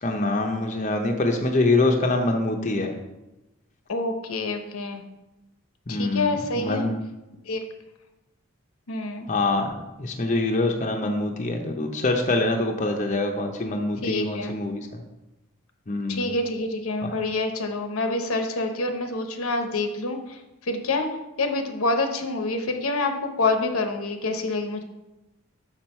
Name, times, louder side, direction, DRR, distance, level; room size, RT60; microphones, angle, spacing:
voice 1, 0.0-2.9 5.9-7.0 9.3-9.7 10.0-15.0 15.9-16.3 17.0-17.1, left 2 dB, 35° left, 3 dB, 0.7 m, -25 dB
voice 2, 3.9-5.0 5.9-6.9 7.5-7.6 8.9-9.3 14.0-14.6 16.1-20.2 20.7-21.1 21.4-24.8, left 2 dB, 80° left, 6 dB, 0.9 m, -27 dB
6.3 x 6.2 x 4.3 m, 1.0 s
head